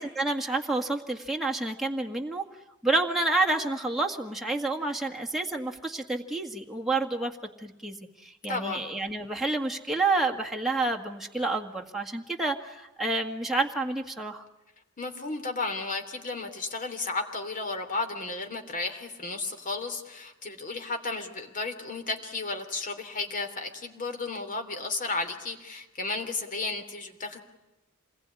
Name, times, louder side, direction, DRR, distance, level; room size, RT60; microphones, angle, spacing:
voice 1, 0.0-2.4 2.8-7.3 7.6-14.5, right 2 dB, ahead, 0 dB, 1.8 m, -29 dB
voice 2, 8.5-8.8 15.0-27.4, left 3 dB, 40° left, 5 dB, 3.2 m, -33 dB
28.0 x 20.5 x 9.8 m, 0.96 s
head